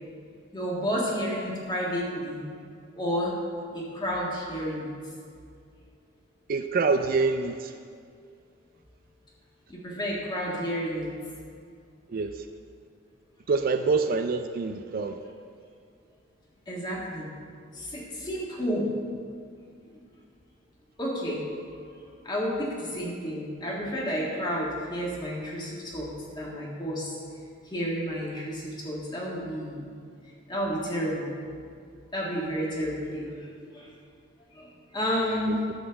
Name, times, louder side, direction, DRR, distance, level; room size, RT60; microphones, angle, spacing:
voice 1, 0.5-2.4 3.0-3.3 3.7-4.9 9.7-11.1 16.7-17.3 17.7-18.9 19.9-20.0 21.0-21.4 21.7-21.9 22.2-26.1 26.4-27.2 27.7-29.8 30.5-31.3 32.1-33.5 33.7-33.9 34.5-34.7 34.9-35.6, equal, 20° left, -4 dB, 1.9 m, -31 dB
voice 2, 6.5-7.7 12.1-12.3 13.5-15.1, right 4 dB, 45° right, 7 dB, 0.4 m, -25 dB
11.0 x 4.2 x 7.0 m, 2.2 s
head